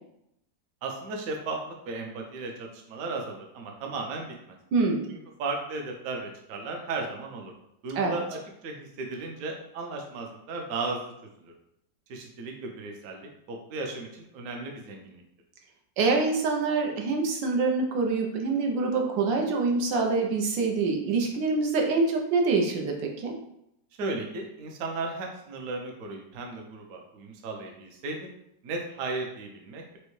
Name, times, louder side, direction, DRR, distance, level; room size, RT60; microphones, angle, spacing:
voice 1, 0.8-4.6 5.1-7.5 7.8-11.1 12.1-15.2 24.0-28.3 28.6-30.0, right 3 dB, 60° right, 2 dB, 1.0 m, -35 dB
voice 2, 4.7-5.1 8.0-8.1 16.0-23.3, right 3 dB, 80° right, 2 dB, 1.4 m, -25 dB
6.1 x 2.2 x 3.1 m, 0.78 s
omnidirectional pair, 2.0 m